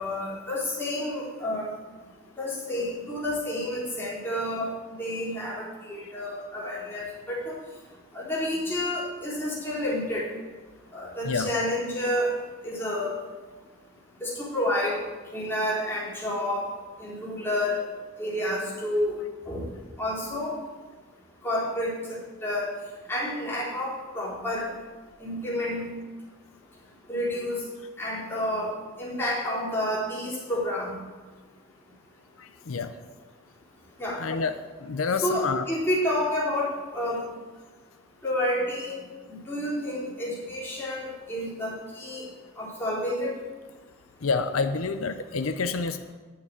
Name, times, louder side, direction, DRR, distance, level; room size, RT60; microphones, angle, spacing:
voice 1, 0.0-1.7 2.4-4.7 5.0-7.5 8.1-10.3 10.9-12.3 12.6-13.1 14.2-15.0 15.3-16.7 17.0-17.8 18.2-19.2 19.5-19.7 20.0-20.6 21.4-22.7 23.1-24.7 25.2-25.8 27.1-27.6 28.0-30.9 34.0-34.2 35.1-37.2 38.2-42.3 42.6-43.3, left 1 dB, 10° left, -7 dB, 3.8 m, -29 dB
voice 2, 32.4-32.9 34.2-34.5 34.8-35.6 44.2-46.1, left 4 dB, 90° left, 10 dB, 0.6 m, -28 dB
9.7 x 6.7 x 8.6 m, 1.3 s
head